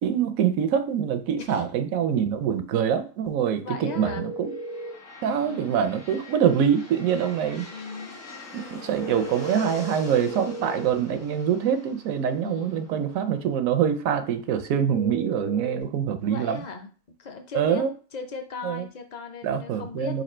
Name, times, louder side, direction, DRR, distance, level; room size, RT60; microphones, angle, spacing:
voice 1, 0.0-4.5 5.2-7.7 8.7-16.6 17.5-17.9 18.6-18.8 19.4-20.2, right 8 dB, 85° right, 1.0 m, -25 dB
voice 2, 3.6-4.3 5.2-5.8 7.7-8.2 12.4-12.9 16.3-16.9 17.2-17.8 18.1-20.2, left 4 dB, 45° left, 0.6 m, -37 dB
sound 1, 3.8-4.9 8.9-10.9 14.9-15.8, right 1 dB, 55° right, 0.6 m, -35 dB
sound 2, 4.4-14.2, left 2 dB, 65° left, 1.5 m, -45 dB
4.1 x 2.6 x 4.2 m
omnidirectional pair, 1.4 m